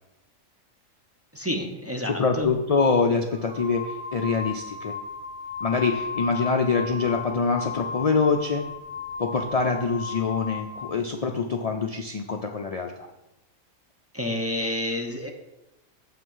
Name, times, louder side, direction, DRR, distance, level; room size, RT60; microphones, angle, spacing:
voice 1, 1.3-2.5 14.1-15.3, left 1 dB, 15° right, 1 dB, 0.7 m, -29 dB
voice 2, 2.0-4.9 5.6-8.7 9.2-13.1, left 4 dB, 65° left, 3 dB, 0.3 m, -25 dB
sound 1, 3.3-11.0, left 5 dB, 55° right, 1.3 m, -35 dB
7.6 x 5.9 x 5.5 m, 0.96 s
omnidirectional pair, 1.4 m